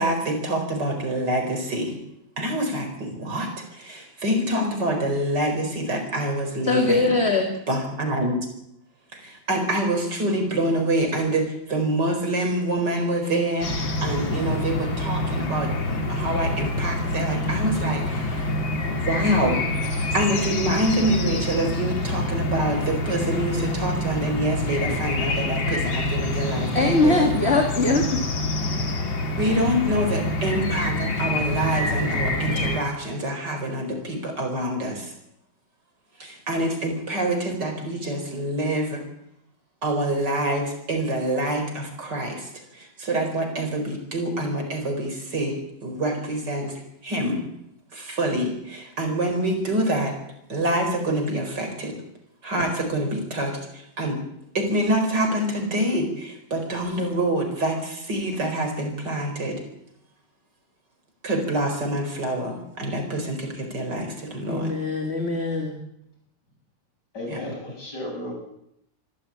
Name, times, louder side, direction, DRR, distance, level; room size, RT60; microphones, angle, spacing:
voice 1, 0.0-2.0 2.4-7.1 7.7-8.4 9.1-18.5 18.9-19.6 19.9-27.3 29.4-35.1 36.2-39.0 39.8-47.4 47.9-50.1 50.5-52.0 52.4-54.2 54.5-59.6 61.2-64.7 67.3-67.4, right 1 dB, 60° right, 3 dB, 5.2 m, -26 dB
voice 2, 6.7-7.6 26.7-28.2 64.5-65.7, left 2 dB, 35° left, 3 dB, 2.4 m, -21 dB
sound 1, 13.6-32.8, left 2 dB, 85° left, 3.2 m, -26 dB
voice 3, 67.1-68.3, left 1 dB, 60° left, 0 dB, 7.8 m, -34 dB
25.0 x 12.5 x 8.7 m, 0.78 s
omnidirectional pair, 2.1 m